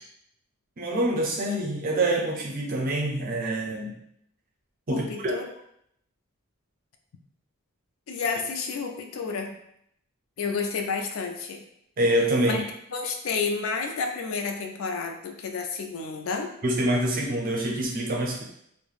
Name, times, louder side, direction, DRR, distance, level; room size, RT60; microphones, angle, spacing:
voice 1, 0.8-4.0 4.9-5.4 12.0-12.6 16.6-18.4, right 1 dB, 40° right, -1 dB, 0.5 m, -26 dB
voice 2, 4.9-5.4 8.1-9.5 10.4-11.6 12.4-12.6 12.9-16.5, left 5 dB, 70° left, 3 dB, 0.4 m, -30 dB
3.2 x 2.1 x 2.4 m, 0.73 s
head